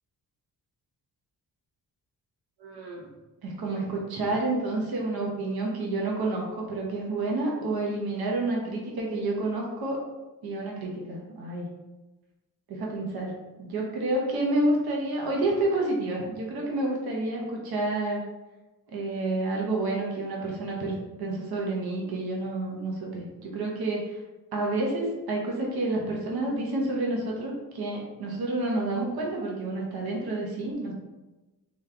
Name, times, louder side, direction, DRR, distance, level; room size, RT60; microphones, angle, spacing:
voice 1, 2.6-3.1 3.4-10.0 10.4-11.7 12.7-18.3 18.9-24.2 24.5-30.9, right 2 dB, 75° right, -2 dB, 1.0 m, -29 dB
3.8 x 3.2 x 3.3 m, 1.1 s
wide cardioid pair, 145°, 38 cm